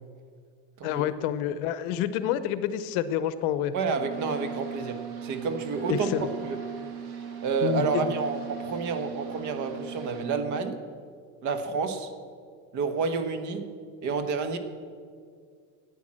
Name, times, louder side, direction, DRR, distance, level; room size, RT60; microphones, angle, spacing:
voice 1, 0.8-3.7 5.9-6.3 7.6-8.1, left 10 dB, 65° left, 14 dB, 0.8 m, -28 dB
voice 2, 3.7-6.1 6.4-6.6 7.4-10.8 11.4-12.1 12.7-13.7 14.0-14.6, right 5 dB, 45° right, 9 dB, 1.3 m, -29 dB
Wind instrument woodwind instrument, 3.9-10.7, right 8 dB, 5° right, 3.6 m, -38 dB
sound 1, 4.1-10.3, right 4 dB, 75° right, 2.2 m, -50 dB
10.5 x 9.2 x 7.6 m, 2.1 s
supercardioid pair, 140°, 43 cm